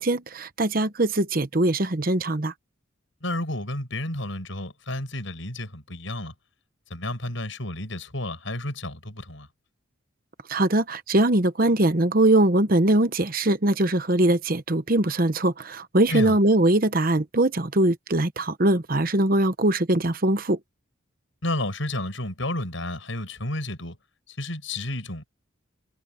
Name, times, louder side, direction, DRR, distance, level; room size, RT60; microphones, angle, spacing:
voice 1, 0.0-2.5 10.5-20.6, right 1 dB, 45° right, 1.0 m, -22 dB
voice 2, 3.2-6.3 6.9-9.5 16.1-16.4 21.4-24.0 24.3-25.3, left 1 dB, 70° left, 6.7 m, -31 dB
head